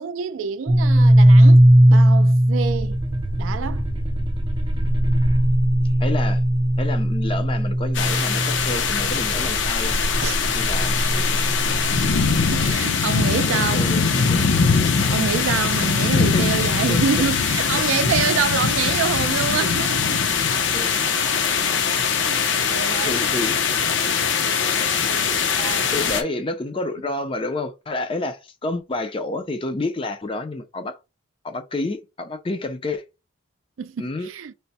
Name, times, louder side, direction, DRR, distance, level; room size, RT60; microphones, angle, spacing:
voice 1, 0.0-1.6 1.9-3.0 3.4-3.8 10.2-10.4 11.7-14.3 15.1-20.3 21.8-23.1 25.6-25.9 33.8-34.5, right 6 dB, 75° right, 0.4 m, -27 dB
sound 1, 0.7-12.6, right 1 dB, 25° right, 0.5 m, -18 dB
voice 2, 6.0-6.4 6.8-10.0 10.5-11.4 13.5-14.0 14.3-14.5 16.2-16.4 16.9-17.0 20.7-21.3 23.1-23.6 25.9-31.0 31.4-33.0 34.0-34.3, left 2 dB, 25° left, 0.4 m, -29 dB
sound 2, 7.9-26.2, left 5 dB, 65° left, 0.6 m, -21 dB
3.3 x 2.1 x 4.0 m
head